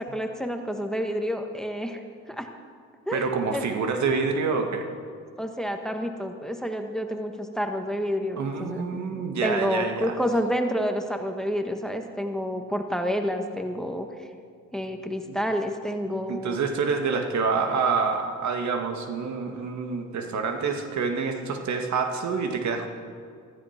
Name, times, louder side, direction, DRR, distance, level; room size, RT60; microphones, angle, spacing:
voice 1, 0.0-2.0 2.3-2.5 3.1-3.6 5.4-8.9 9.4-14.1 14.7-16.6, equal, ahead, 5 dB, 1.3 m, -29 dB
voice 2, 3.1-4.9 8.4-10.1 15.3-15.4 16.3-22.9, right 5 dB, 70° right, 5 dB, 1.8 m, -27 dB
15.5 x 14.0 x 5.8 m, 2.1 s
cardioid pair, 90°, 30 cm